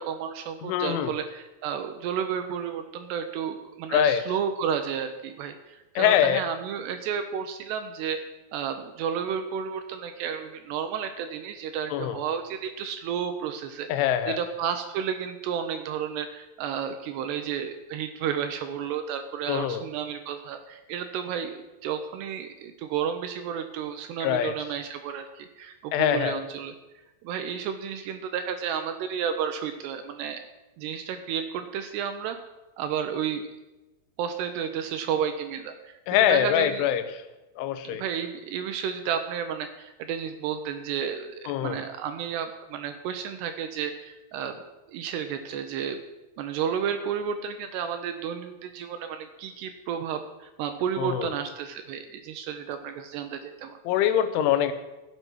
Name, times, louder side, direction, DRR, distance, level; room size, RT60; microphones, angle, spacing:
voice 1, 0.0-26.7 27.2-30.4 30.8-32.4 32.8-33.4 34.2-36.9 37.8-44.6 44.9-46.0 46.4-53.7, right 8 dB, 80° right, 7 dB, 2.6 m, -32 dB
voice 2, 0.6-1.1 3.9-4.2 6.0-6.5 11.9-12.2 13.9-14.4 19.5-19.8 24.2-24.5 25.9-26.4 36.1-37.2 37.6-38.0 41.5-41.8 51.0-51.3 53.9-54.7, left 10 dB, 90° left, 10 dB, 3.3 m, -24 dB
15.5 x 6.8 x 6.2 m, 1.0 s
omnidirectional pair, 5.4 m